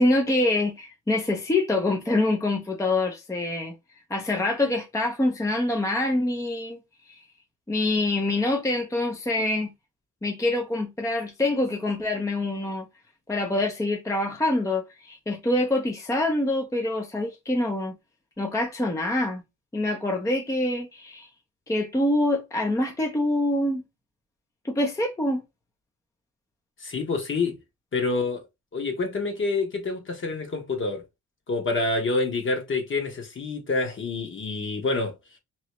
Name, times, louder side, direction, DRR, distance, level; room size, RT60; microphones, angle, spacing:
voice 1, 0.0-3.7 4.1-6.8 7.1-7.2 7.7-9.7 10.2-12.9 13.3-17.9 18.4-19.4 19.7-21.3 21.7-23.8 24.6-25.4, left 2 dB, 10° left, 0.6 m, -25 dB
voice 2, 26.8-27.6 27.9-28.4 28.7-31.0 31.5-35.1, left 3 dB, 40° left, 1.2 m, -27 dB
3.0 x 2.8 x 3.0 m
cardioid pair, 90°, 30 cm